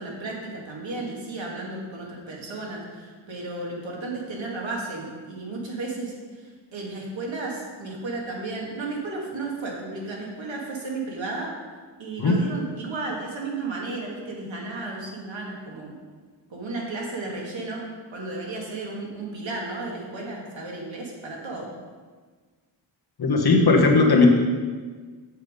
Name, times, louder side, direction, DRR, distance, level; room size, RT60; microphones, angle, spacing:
voice 1, 0.0-11.5 12.0-16.0 16.5-17.8 18.1-21.7, right 3 dB, 80° right, -2 dB, 2.3 m, -33 dB
voice 2, 23.2-24.3, left 3 dB, 55° left, 1 dB, 1.4 m, -17 dB
8.6 x 7.3 x 5.2 m, 1.5 s
wide cardioid pair, 160°, 45 cm